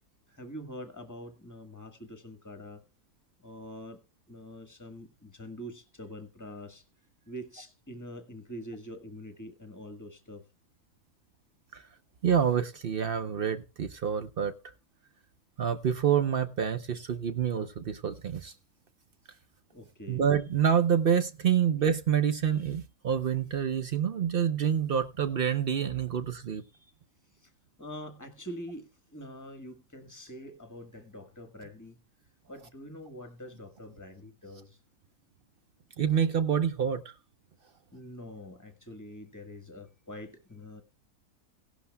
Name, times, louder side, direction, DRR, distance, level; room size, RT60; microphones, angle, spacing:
voice 1, 0.3-2.8 3.4-4.0 4.3-6.8 7.2-10.4 19.7-20.2 27.4-27.5 27.8-32.0 32.5-34.8 37.9-40.8, equal, 10° left, 1.3 m, -45 dB
voice 2, 12.2-14.5 15.6-18.5 20.1-26.6 36.0-37.0, right 8 dB, 60° right, 0.6 m, -27 dB
17.0 x 11.5 x 2.2 m
omnidirectional pair, 1.6 m